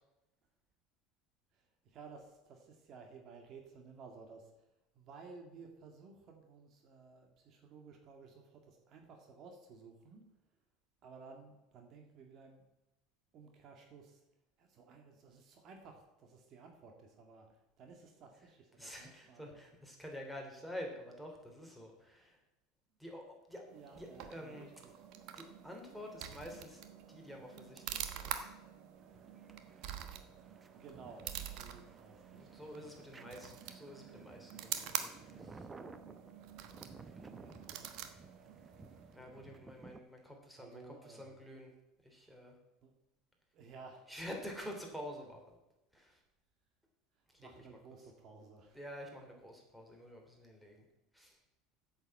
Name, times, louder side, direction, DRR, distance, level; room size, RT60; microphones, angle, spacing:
voice 1, 1.5-4.5 4.9-10.2 11.0-12.6 13.3-14.2 14.6-19.6 23.7-25.0 30.7-33.3 37.4-38.0 39.2-39.7 40.6-41.4 42.8-42.9 43.5-44.1 47.4-48.8, right 4 dB, 45° right, 3 dB, 2.0 m, -56 dB
voice 2, 18.8-22.4 23.0-23.6 23.9-24.7 25.3-26.8 27.1-28.5 32.5-35.1 35.4-35.7 39.1-41.7 42.0-42.6 44.1-45.6 45.9-46.2 48.7-50.8 51.1-51.4, equal, ahead, 1 dB, 3.0 m, -48 dB
sound 1, 23.7-39.2, right 10 dB, 60° right, 1.2 m, -46 dB
sound 2, 29.0-40.0, right 3 dB, 20° right, 0.8 m, -56 dB
8.3 x 7.2 x 7.7 m, 0.93 s
supercardioid pair, 115°, 0 cm